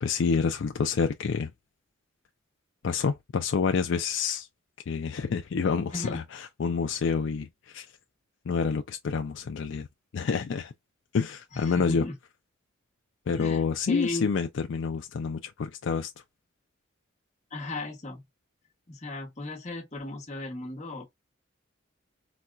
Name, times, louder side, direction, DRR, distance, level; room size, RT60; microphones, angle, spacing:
voice 1, 0.0-1.5 2.8-4.5 4.9-7.9 8.5-9.9 10.1-10.7 11.1-12.0 13.3-16.1, left 5 dB, 65° left, 0.4 m, -28 dB
voice 2, 11.5-12.1 13.4-14.3 17.5-18.2 18.9-21.1, left 2 dB, 35° left, 1.1 m, -36 dB
4.1 x 2.3 x 2.3 m
head